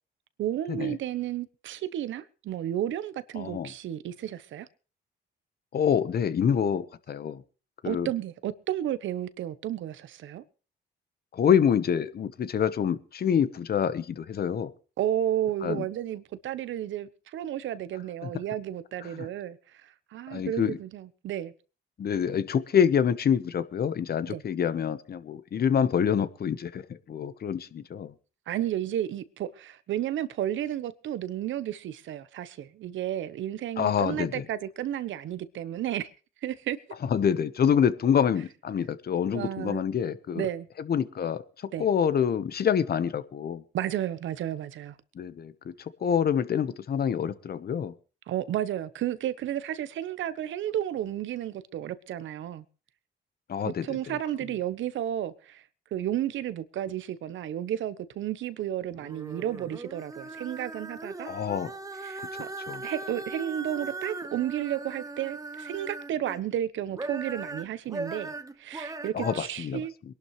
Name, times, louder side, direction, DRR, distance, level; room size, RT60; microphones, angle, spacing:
voice 1, 0.4-4.7 7.8-10.4 15.0-21.5 24.3-24.4 28.5-36.1 36.4-36.8 39.3-39.8 40.3-40.7 41.7-41.9 43.7-44.9 48.3-52.6 53.8-55.6 55.9-61.3 62.0-62.5 62.8-69.9, right 11 dB, 75° right, 1.0 m, -32 dB
voice 2, 3.4-3.7 5.7-7.4 7.8-8.1 11.3-14.7 15.6-15.8 19.1-19.3 20.3-20.8 22.0-28.1 33.8-34.4 37.1-40.5 40.8-41.4 41.8-43.6 45.1-45.7 46.0-47.9 53.5-53.8 61.2-61.7 62.2-62.3 62.7-62.8 69.1-69.8, left 8 dB, 50° left, 1.1 m, -26 dB
sound 1, 58.9-66.4 66.8-69.4, right 2 dB, 15° right, 1.1 m, -39 dB
22.5 x 11.5 x 3.2 m
cardioid pair, 90°, 20 cm